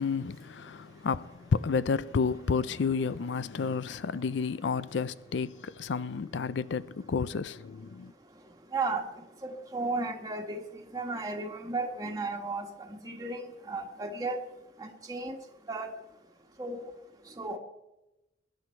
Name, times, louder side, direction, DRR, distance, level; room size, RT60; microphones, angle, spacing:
voice 1, 0.0-8.1, left 5 dB, 80° left, 0.4 m, -31 dB
voice 2, 8.7-9.0 9.4-10.6 10.9-14.4 14.8-15.4 15.7-15.9 16.6-16.9 17.4-17.6, right 3 dB, 20° right, 1.4 m, -34 dB
22.0 x 10.0 x 4.5 m
head